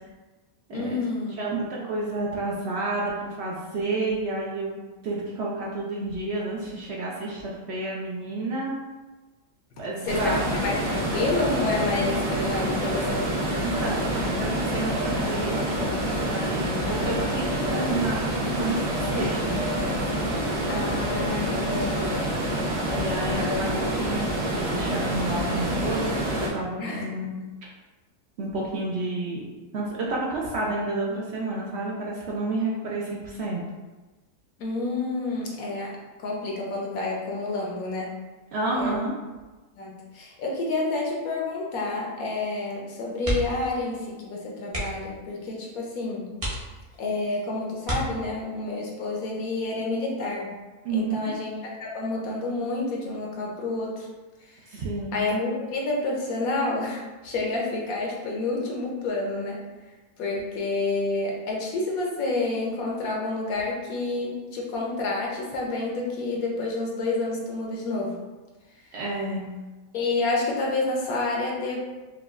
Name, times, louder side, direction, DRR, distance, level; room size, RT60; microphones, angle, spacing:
voice 1, 0.7-1.4 9.7-13.3 20.7-22.2 23.2-23.5 26.8-27.1 34.6-38.2 38.7-39.0 39.8-46.3 47.0-50.5 50.9-54.1 54.4-54.6 55.1-59.6 60.2-68.2 69.9-71.9, left 2 dB, 80° left, -2 dB, 1.2 m, -29 dB
voice 2, 1.4-8.7 9.8-10.4 13.6-15.6 16.3-19.6 22.9-27.3 28.4-29.5 29.7-33.6 38.5-39.1 50.8-51.3 54.7-55.2 68.9-69.4, right 2 dB, 65° right, -4 dB, 0.7 m, -30 dB
sound 1, 10.1-26.5, equal, 80° right, 1.6 m, -27 dB
sound 2, 11.2-12.3 12.9-13.2 13.5-14.1 14.9-15.1 15.5-16.0 16.8-17.1 17.4-18.1 18.8-19.1 19.4-20.1 21.0-21.2 21.5-22.3 22.9-23.9, left 3 dB, 65° left, 0.9 m, -36 dB
sound 3, 43.2-43.7 44.0-44.2 44.6-45.1 45.8-45.9 46.3-47.1 47.8-48.6 50.2-50.5 50.8-50.9, right 1 dB, 30° right, 0.7 m, -31 dB
4.7 x 2.3 x 2.4 m, 1.2 s
omnidirectional pair, 1.5 m